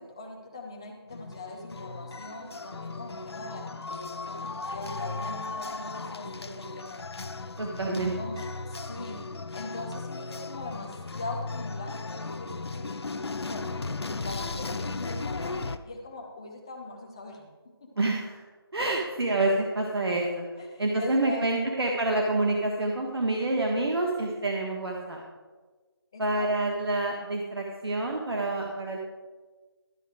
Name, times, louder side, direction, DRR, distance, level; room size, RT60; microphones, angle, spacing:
voice 1, 0.0-7.0 7.9-9.2 9.5-12.9 13.4-13.8 14.1-15.6 15.8-17.9 20.6-21.5 26.1-26.5, left 2 dB, 10° left, 0 dB, 0.6 m, -41 dB
sound 1, 1.1-15.8, left 3 dB, 80° left, 0.6 m, -36 dB
voice 2, 7.6-8.1 18.0-18.4 18.7-20.4 20.8-25.2 26.2-29.0, right 2 dB, 75° right, 0 dB, 1.5 m, -27 dB
12.5 x 7.4 x 4.9 m, 1.4 s
figure-of-eight pair, 175°, 13 cm